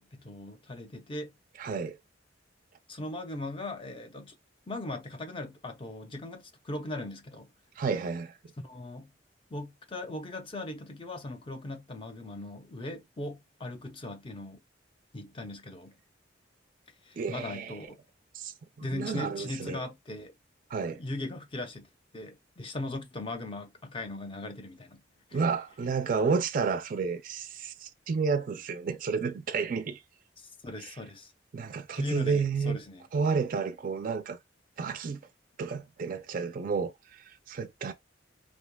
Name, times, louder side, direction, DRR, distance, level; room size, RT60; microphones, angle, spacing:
voice 1, 0.0-1.3 2.9-4.4 4.7-7.5 8.6-9.1 9.5-14.6 15.1-15.9 17.0-18.0 18.8-20.3 20.9-21.9 22.1-25.0 25.3-25.4 30.4-31.3 31.9-33.0, left 2 dB, 30° left, 0.5 m, -39 dB
voice 2, 1.6-2.0 7.8-8.4 17.2-17.8 18.3-19.8 20.7-21.0 25.3-30.0 30.8-30.9 31.5-32.8 33.1-34.4 34.8-35.2 35.6-37.9, right 5 dB, 45° right, 0.4 m, -31 dB
3.4 x 2.7 x 2.2 m
head